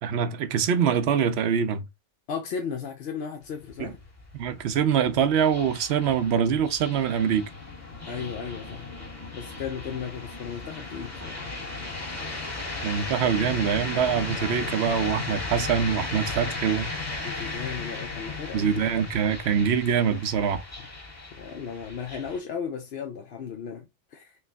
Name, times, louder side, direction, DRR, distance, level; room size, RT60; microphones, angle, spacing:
voice 1, 0.0-1.8 3.8-3.9 4.3-7.5 12.8-16.9 18.5-20.6, right 7 dB, 65° right, 0.8 m, -24 dB
voice 2, 2.3-4.0 8.0-8.9 9.3-11.4 17.2-18.6 21.4-24.4, left 6 dB, 60° left, 0.8 m, -35 dB
sound 1, 3.4-22.4, left 3 dB, 15° left, 1.3 m, -36 dB
4.6 x 2.3 x 3.4 m
omnidirectional pair, 1.2 m